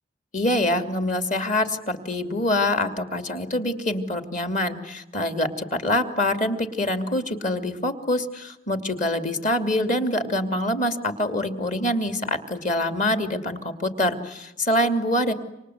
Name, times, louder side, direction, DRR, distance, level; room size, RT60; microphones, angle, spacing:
voice 1, 0.3-15.3, left 1 dB, 45° left, 7 dB, 2.8 m, -25 dB
28.5 x 25.5 x 8.1 m, 0.93 s
head